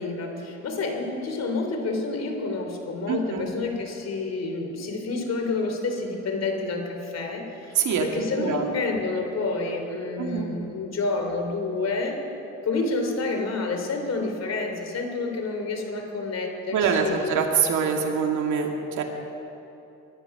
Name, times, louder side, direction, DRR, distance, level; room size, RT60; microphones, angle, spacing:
voice 1, 0.0-12.2 12.6-17.4, left 3 dB, 60° left, 3 dB, 3.1 m, -29 dB
voice 2, 3.1-3.5 7.7-8.1 8.4-8.6 10.2-10.5 16.7-19.0, right 6 dB, 75° right, 2 dB, 2.1 m, -24 dB
21.5 x 11.5 x 5.9 m, 2.9 s
cardioid pair, 90°, 30 cm